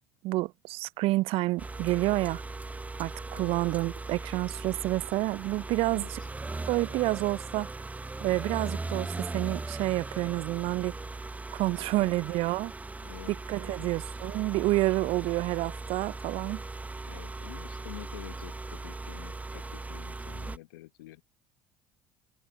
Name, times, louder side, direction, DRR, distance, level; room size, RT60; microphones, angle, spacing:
voice 1, 0.2-2.4 3.0-6.0 6.7-7.7 8.2-10.9 11.5-12.7 13.3-16.6, right 19 dB, 55° right, 0.4 m, -29 dB
sound 1, 1.6-20.6, right 3 dB, 15° right, 0.7 m, -39 dB
voice 2, 5.9-6.3 12.0-12.1 13.0-13.3 13.7-13.9 14.4-14.5 16.1-16.2 17.0-21.2, left 18 dB, 75° left, 1.1 m, -48 dB
hypercardioid pair, 65°, 11 cm